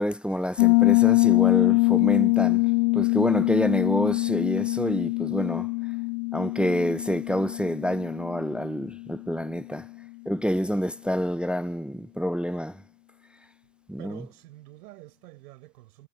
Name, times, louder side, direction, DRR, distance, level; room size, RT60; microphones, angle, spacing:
voice 1, 0.0-2.6 2.9-5.7 6.3-9.9 10.3-12.8 13.9-14.2, equal, ahead, 0.6 m, -27 dB
Piano, 0.6-9.1, left 27 dB, 55° left, 0.6 m, -23 dB
voice 2, 14.0-16.1, right 18 dB, 65° right, 6.8 m, -47 dB
figure-of-eight pair, 65°, 49 cm